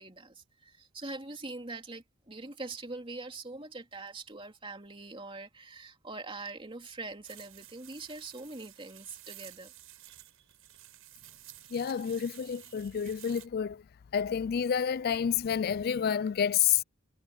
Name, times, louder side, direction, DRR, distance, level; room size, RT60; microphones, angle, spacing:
voice 1, 0.0-9.7 10.1-10.3, right 3 dB, 25° right, 3.0 m, -43 dB
sound 1, 7.2-13.5, right 14 dB, 75° right, 6.7 m, -52 dB
voice 2, 11.7-13.8 14.1-16.8, left 8 dB, 45° left, 0.3 m, -29 dB
head